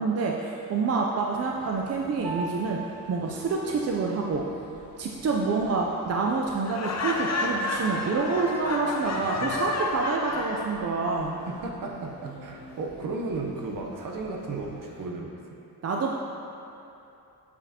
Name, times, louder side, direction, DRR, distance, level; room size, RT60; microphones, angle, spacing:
voice 1, 0.0-2.8 3.1-4.4 5.0-11.4 15.8-16.1, right 4 dB, 40° right, -1 dB, 0.5 m, -27 dB
sound 1, 1.3-15.0, equal, 60° left, 1.8 m, -49 dB
Piano, 2.2-11.9, right 4 dB, 85° right, 1.8 m, -46 dB
Laughter, 6.7-10.7, left 3 dB, 45° left, 0.7 m, -30 dB
voice 2, 9.1-9.6 11.5-15.4, right 3 dB, 60° right, 0 dB, 0.9 m, -35 dB
8.6 x 7.3 x 2.9 m, 2.8 s
wide cardioid pair, 140°, 38 cm